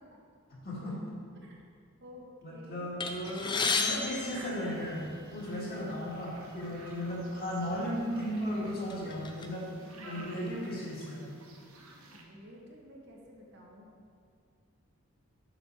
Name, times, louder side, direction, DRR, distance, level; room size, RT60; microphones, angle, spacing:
voice 1, 0.6-1.0 2.4-11.3, equal, 45° left, -6 dB, 2.2 m, -36 dB
voice 2, 2.0-2.9 9.4-11.0 12.0-13.9, left 1 dB, 50° right, -2 dB, 1.2 m, -52 dB
sound 1, 3.0-5.3 6.2-6.3 6.6-6.8 7.6-7.8 8.3-9.5, left 4 dB, 20° left, 0.4 m, -33 dB
sound 2, 3.2-12.2, right 2 dB, 75° right, 1.1 m, -54 dB
7.9 x 6.1 x 4.6 m, 2.2 s
head